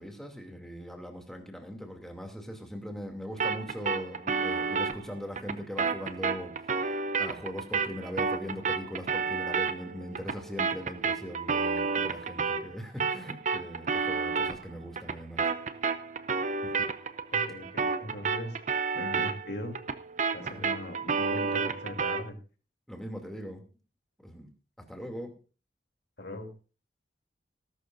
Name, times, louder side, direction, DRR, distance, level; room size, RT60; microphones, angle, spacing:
voice 1, 0.0-15.5 16.6-16.9 20.4-20.8 22.9-23.6 24.2-24.5 24.8-25.3, equal, ahead, 2 dB, 2.7 m, -40 dB
sound 1, 3.4-12.7 13.0-22.3, right 5 dB, 40° right, 0.7 m, -31 dB
voice 2, 17.3-18.6 18.9-19.8 20.3-22.4 26.2-26.5, left 1 dB, 70° left, 3 dB, 3.1 m, -39 dB
19.5 x 12.0 x 2.6 m, 0.35 s
head